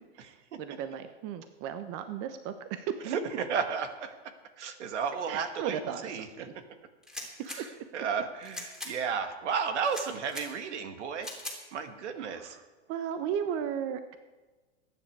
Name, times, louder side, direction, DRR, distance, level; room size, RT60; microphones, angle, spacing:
voice 1, 0.1-3.2 5.3-6.5 7.6-7.7 12.2-12.6 12.9-14.2, right 8 dB, 40° right, 9 dB, 1.0 m, -36 dB
voice 2, 3.0-6.5 7.5-11.3 11.7-12.6, right 6 dB, 75° right, 8 dB, 2.0 m, -33 dB
sound 1, 7.0-7.6 8.4-8.9 9.8-10.5 11.2-11.6, left 1 dB, ahead, 3.4 m, -40 dB
21.0 x 10.0 x 4.8 m, 1.2 s
hypercardioid pair, 125°, 35 cm